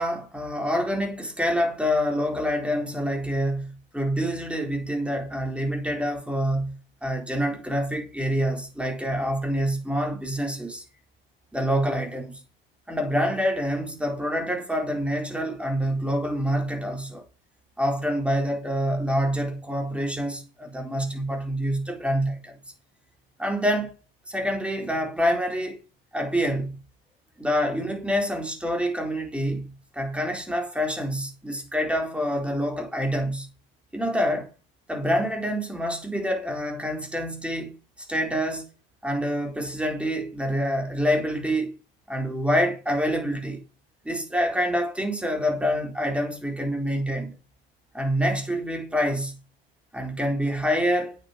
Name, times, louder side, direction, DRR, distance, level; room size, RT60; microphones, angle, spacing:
voice 1, 0.0-10.8 11.5-12.4 12.9-17.2 17.8-22.5 23.4-23.9 24.3-25.8 26.1-26.8 27.4-33.5 33.9-34.5 34.9-37.7 38.1-38.7 39.0-41.8 42.1-43.6 44.0-47.3 47.9-49.4 49.9-51.2, equal, 5° right, 4.1 m, -26 dB
8.7 x 8.2 x 6.5 m
hypercardioid pair, 75°, 29 cm